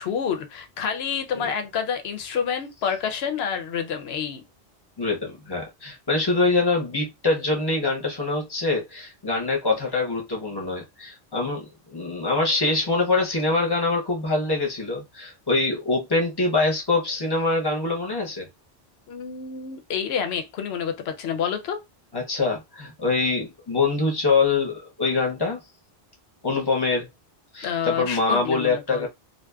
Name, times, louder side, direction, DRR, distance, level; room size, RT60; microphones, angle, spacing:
voice 1, 0.0-4.4 19.1-21.8 27.6-29.1, left 7 dB, 75° left, 0.8 m, -28 dB
voice 2, 5.0-18.5 22.1-25.6 26.4-27.1 27.5-29.1, left 3 dB, 25° left, 0.6 m, -24 dB
2.6 x 2.1 x 2.2 m
omnidirectional pair, 1.1 m